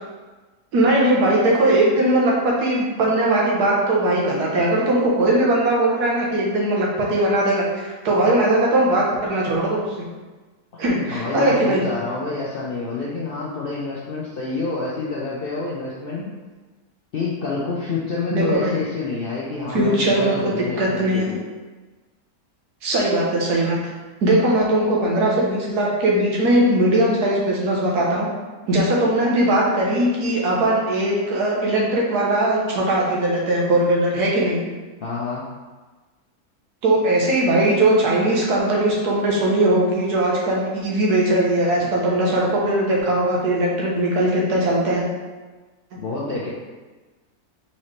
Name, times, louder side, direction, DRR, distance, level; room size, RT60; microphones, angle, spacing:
voice 1, 0.7-9.8 10.8-11.8 18.3-18.8 19.7-21.3 22.8-23.8 24.2-28.3 28.7-34.6 36.8-45.0, right 1 dB, 85° right, -4 dB, 1.5 m, -19 dB
voice 2, 11.1-16.3 17.1-21.4 35.0-35.4 46.0-46.5, left 3 dB, 65° left, -5 dB, 0.5 m, -28 dB
4.2 x 3.8 x 3.2 m, 1.3 s
omnidirectional pair, 1.6 m